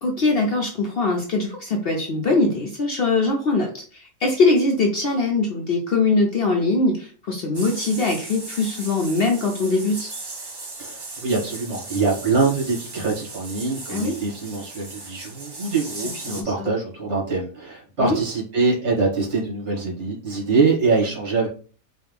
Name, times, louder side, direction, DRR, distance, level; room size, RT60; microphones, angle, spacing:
voice 1, 0.0-10.1 13.9-14.2 16.1-16.7 18.0-18.2, left 3 dB, 55° left, 1 dB, 0.7 m, -22 dB
sound 1, 7.5-16.4, right 3 dB, 35° right, 0.4 m, -37 dB
voice 2, 10.8-21.5, right 4 dB, 55° right, -3 dB, 1.9 m, -24 dB
4.3 x 2.4 x 3.5 m, 0.40 s
omnidirectional pair, 1.4 m